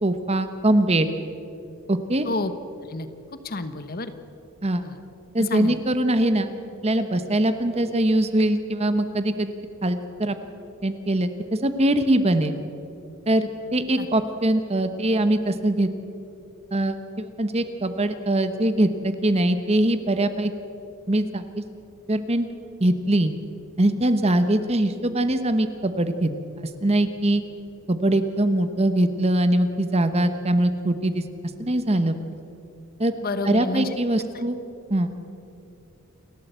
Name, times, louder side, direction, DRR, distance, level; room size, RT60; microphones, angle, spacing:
voice 1, 0.0-1.1 1.9-2.3 4.6-4.8 5.3-6.5 6.8-9.5 9.8-10.4 10.8-12.5 13.3-15.9 16.7-20.5 21.1-21.6 22.1-22.5 22.8-23.3 23.8-26.3 26.6-27.4 27.9-31.2 31.6-32.1 33.0-33.1 33.4-34.6 34.9-35.1, right 1 dB, 30° right, 10 dB, 1.1 m, -22 dB
voice 2, 3.4-4.1 4.8-5.0 5.5-5.8 14.0-14.1 33.2-34.0, left 2 dB, 45° left, 10 dB, 1.1 m, -29 dB
28.5 x 13.5 x 8.2 m, 2.8 s
head